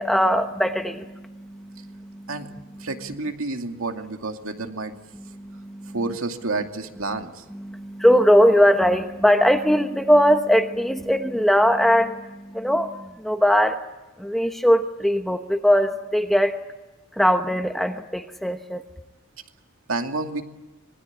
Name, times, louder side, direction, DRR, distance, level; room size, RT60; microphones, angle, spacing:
voice 1, 0.0-2.3 5.4-6.0 7.6-13.8 14.2-16.6 17.2-18.8, equal, ahead, 5 dB, 1.0 m, -20 dB
voice 2, 2.8-4.9 5.9-7.4 19.9-20.4, right 3 dB, 75° right, 5 dB, 2.4 m, -29 dB
26.5 x 22.0 x 8.6 m, 1.2 s
head